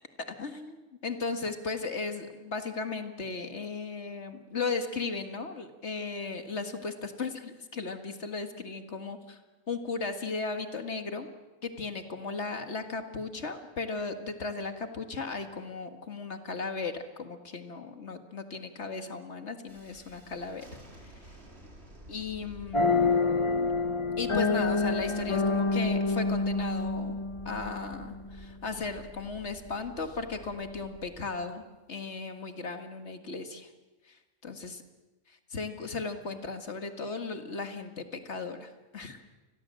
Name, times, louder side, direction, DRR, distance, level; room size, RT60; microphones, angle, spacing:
voice 1, 0.2-9.4 9.7-11.3 11.6-20.7 21.0-21.2 22.1-23.2 24.2-27.2 27.5-33.7 34.0-34.8 35.3-39.2, left 4 dB, 60° left, 7 dB, 2.0 m, -36 dB
Thunderstorm, 19.7-31.2, right 1 dB, 50° right, 4.1 m, -51 dB
sound 1, 22.7-28.2, left 3 dB, 25° left, 1.0 m, -27 dB
29.0 x 21.5 x 7.6 m, 1.2 s
omnidirectional pair, 1.4 m